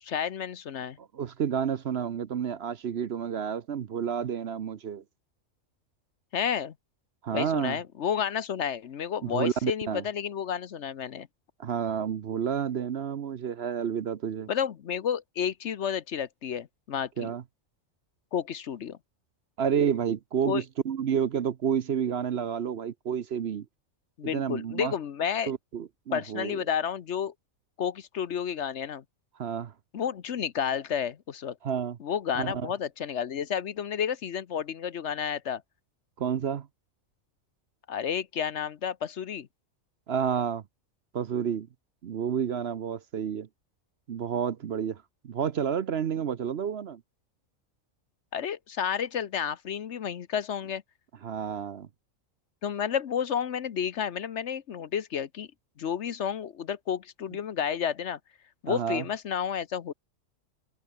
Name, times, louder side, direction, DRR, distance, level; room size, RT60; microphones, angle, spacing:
voice 1, 0.0-1.0 6.3-6.7 7.3-11.3 14.5-17.3 18.3-19.0 20.5-20.6 24.2-25.5 26.1-27.3 27.8-29.0 29.9-31.6 32.0-35.6 37.9-39.5 48.3-50.8 52.6-55.5 55.8-58.2 58.6-59.9, left 8 dB, 60° left, 1.1 m, -31 dB
voice 2, 1.0-5.0 7.2-7.8 9.2-10.0 11.6-14.5 17.2-17.4 19.6-23.7 24.3-24.9 25.5-26.6 29.4-29.7 31.6-32.0 32.3-32.7 36.2-36.7 40.1-40.6 41.1-41.7 42.0-43.5 44.1-47.0 51.2-51.9 58.7-59.0, right 8 dB, 55° right, 1.0 m, -30 dB
omnidirectional pair, 1.4 m